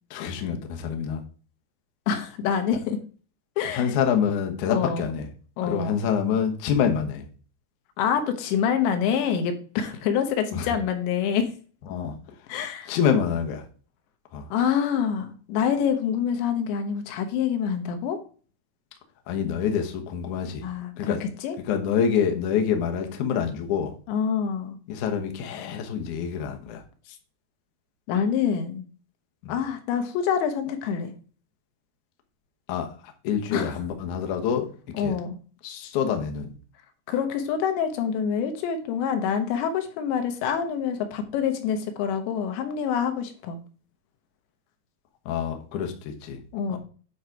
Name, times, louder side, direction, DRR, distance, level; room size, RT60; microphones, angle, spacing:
voice 1, 0.1-1.2 3.7-5.3 5.6-7.3 10.5-10.8 11.9-12.1 12.9-13.7 14.3-14.5 19.3-20.6 21.0-21.2 21.6-23.9 24.9-26.8 29.4-29.6 32.7-34.7 35.0-35.2 35.6-36.5 45.3-46.4 46.7-46.8, left 7 dB, 70° left, 5 dB, 1.9 m, -26 dB
voice 2, 2.1-3.0 3.6-3.9 4.7-5.1 5.6-6.0 8.0-11.5 12.5-12.9 14.5-18.2 20.6-21.6 24.1-24.8 27.1-27.2 28.1-28.9 29.5-31.1 33.5-33.7 34.9-35.4 37.1-43.6 46.5-46.8, left 7 dB, 85° left, 7 dB, 3.4 m, -26 dB
9.4 x 4.9 x 4.6 m, 0.40 s
omnidirectional pair, 5.0 m